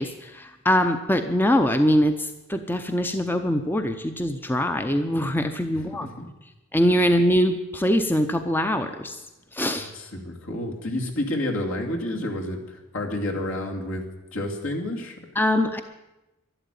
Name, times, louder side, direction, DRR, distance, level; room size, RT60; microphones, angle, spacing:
voice 1, 0.0-2.1 2.5-6.1 6.7-9.2 9.5-9.9 15.4-15.8, equal, 10° left, 8 dB, 0.6 m, -23 dB
voice 2, 5.7-6.3 9.8-14.0 14.3-15.1, left 1 dB, 70° left, 0 dB, 2.8 m, -30 dB
12.0 x 11.5 x 9.2 m, 0.99 s
head